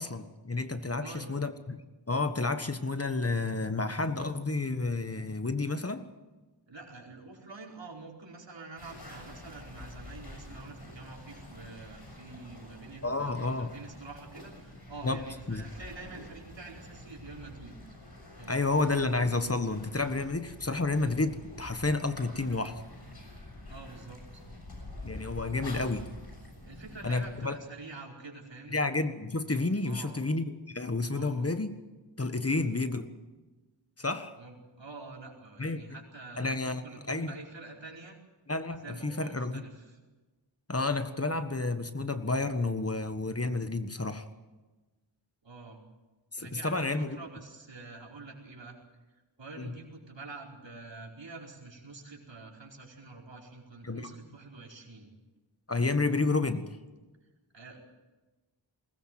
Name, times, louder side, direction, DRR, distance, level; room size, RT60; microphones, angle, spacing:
voice 1, 0.0-1.8 2.1-6.0 13.0-13.7 15.0-15.2 15.5-15.6 18.5-22.8 25.0-26.1 27.0-27.6 28.7-31.8 32.2-33.1 34.0-34.3 35.6-35.8 36.4-36.8 37.1-37.3 38.5-39.6 40.7-44.2 46.3-47.2 49.6-49.7 53.8-54.1 55.7-56.7, left 3 dB, 30° left, 9 dB, 1.5 m, -30 dB
voice 2, 0.8-1.4 6.7-17.8 18.4-18.6 23.7-24.4 26.6-28.8 29.8-30.2 31.1-31.5 32.4-32.7 34.4-38.2 38.8-40.0 45.4-45.8 46.4-48.8 49.4-55.1 57.5-57.8, right 3 dB, 75° right, -1 dB, 4.8 m, -47 dB
sound 1, 8.8-27.5, left 1 dB, 60° left, 6.9 m, -47 dB
21.5 x 19.5 x 7.7 m, 1.2 s
wide cardioid pair, 65°, 44 cm